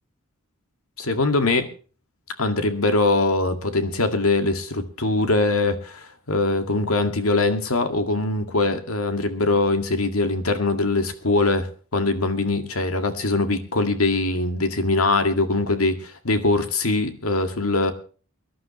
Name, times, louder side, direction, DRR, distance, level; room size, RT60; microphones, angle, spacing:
voice 1, 1.0-1.7 2.4-11.7 11.9-17.9, left 2 dB, 80° left, 7 dB, 2.1 m, -22 dB
24.0 x 11.5 x 3.1 m, 0.38 s
head